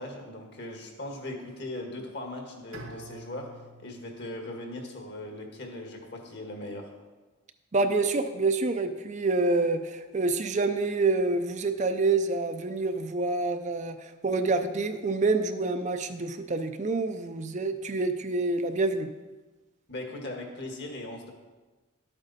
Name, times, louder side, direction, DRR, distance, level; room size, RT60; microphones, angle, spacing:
voice 1, 0.0-3.5 3.8-6.9 19.9-21.3, left 1 dB, 55° left, 2 dB, 1.7 m, -39 dB
Bowed string instrument, 2.7-5.7, right 1 dB, 85° right, 2.2 m, -49 dB
voice 2, 7.7-19.1, right 3 dB, 35° right, 8 dB, 0.5 m, -27 dB
11.5 x 8.9 x 4.1 m, 1.2 s
head